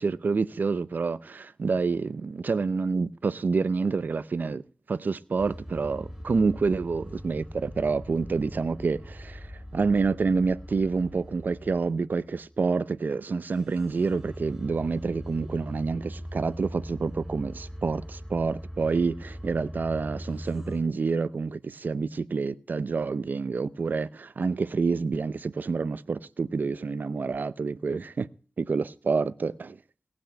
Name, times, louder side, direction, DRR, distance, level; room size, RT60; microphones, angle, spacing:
voice 1, 0.0-4.6 4.9-28.3 28.6-29.8, right 4 dB, 75° right, 0.6 m, -28 dB
sound 1, 5.4-13.1 13.5-20.8, equal, 5° right, 5.4 m, -41 dB
18.0 x 6.1 x 7.2 m
wide cardioid pair, 70°, 3 cm